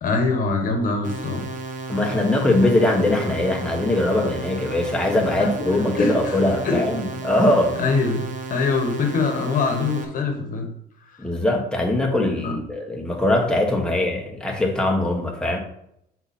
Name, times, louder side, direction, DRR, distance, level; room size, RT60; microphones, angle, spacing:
voice 1, 0.0-1.5 5.4-6.4 6.6-6.8 7.8-10.7 12.4-12.5, left 3 dB, 55° left, 5 dB, 1.3 m, -23 dB
sound 1, 1.0-10.0, right 3 dB, 50° right, 1.2 m, -33 dB
voice 2, 1.9-7.8 11.2-15.6, left 1 dB, 5° left, 0 dB, 1.4 m, -21 dB
7.9 x 4.3 x 4.3 m, 0.76 s
cardioid pair, 110°, 17 cm